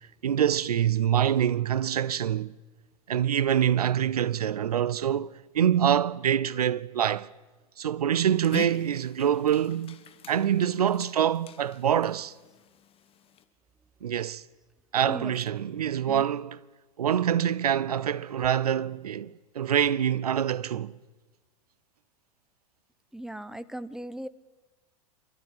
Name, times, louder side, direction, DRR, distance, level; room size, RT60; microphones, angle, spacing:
voice 1, 0.2-2.5 3.1-7.3 7.8-10.0 10.3-12.3 14.0-14.4 14.9-16.6 17.0-20.9, right 9 dB, 80° right, 0.7 m, -25 dB
Dog, 8.1-13.4, left 9 dB, 30° left, 1.5 m, -45 dB
voice 2, 15.0-15.3 16.1-16.3 23.1-24.3, right 1 dB, ahead, 0.9 m, -38 dB
27.5 x 13.0 x 8.4 m
hypercardioid pair, 95°, 19 cm